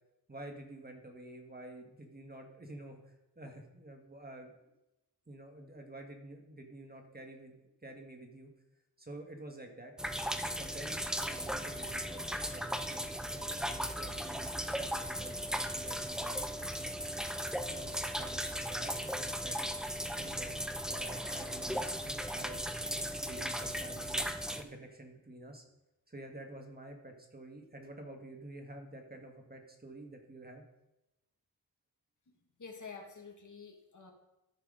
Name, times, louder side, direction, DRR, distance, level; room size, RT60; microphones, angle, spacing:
voice 1, 0.3-4.5 5.3-8.5 9.0-9.9 10.6-17.0 17.5-19.7 20.2-20.5 20.8-22.6 23.2-25.7 26.1-30.6, right 1 dB, 25° right, 3 dB, 1.4 m, -49 dB
sound 1, 10.0-24.6, equal, ahead, 0.6 m, -37 dB
voice 2, 32.6-34.1, left 5 dB, 55° left, 2 dB, 1.6 m, -48 dB
13.5 x 5.9 x 3.7 m, 0.93 s
wide cardioid pair, 85°, 36 cm